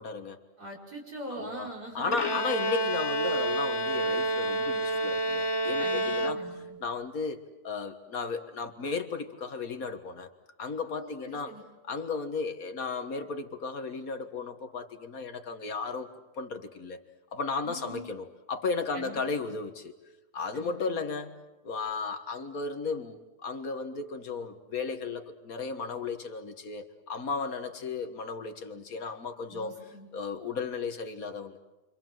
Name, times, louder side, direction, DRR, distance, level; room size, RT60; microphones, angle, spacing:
voice 1, 0.0-0.4 1.3-1.7 1.9-6.4 6.8-10.3 10.6-11.6 11.8-16.1 16.4-17.0 17.3-19.9 20.3-21.4 21.6-29.8 30.1-31.6, left 4 dB, 60° left, 8 dB, 1.9 m, -35 dB
voice 2, 0.6-2.4 5.8-6.8 10.9-11.6 17.6-18.1 18.9-19.2 20.5-21.0 29.5-30.1, right 1 dB, 70° right, -1 dB, 5.8 m, -43 dB
Bowed string instrument, 2.1-6.8, right 1 dB, 25° left, 0.6 m, -29 dB
29.0 x 25.0 x 7.6 m, 1.1 s
omnidirectional pair, 1.7 m